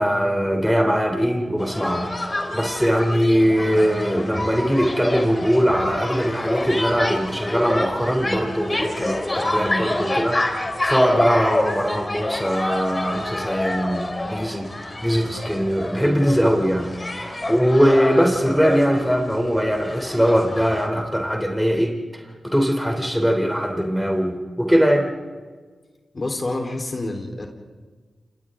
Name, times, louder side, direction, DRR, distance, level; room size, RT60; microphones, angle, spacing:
voice 1, 0.0-2.1 2.5-10.4 10.8-14.7 15.0-25.1, equal, ahead, 3 dB, 3.3 m, -21 dB
sound 1, 1.6-20.9, left 1 dB, 30° left, 3.4 m, -28 dB
voice 2, 26.1-27.5, left 2 dB, 45° left, 2 dB, 3.9 m, -27 dB
28.5 x 28.5 x 3.8 m, 1.4 s
cardioid pair, 55°, 0 cm